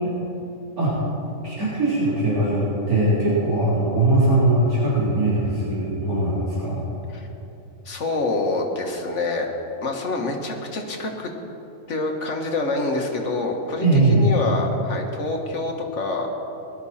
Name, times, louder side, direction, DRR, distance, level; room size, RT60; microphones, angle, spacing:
voice 1, 1.4-6.8 13.8-14.3, right 2 dB, 85° right, -8 dB, 4.1 m, -20 dB
voice 2, 7.9-9.5 9.8-11.3 11.9-16.3, left 3 dB, 55° left, 2 dB, 1.8 m, -26 dB
19.5 x 12.0 x 4.3 m, 2.8 s
omnidirectional pair, 1.5 m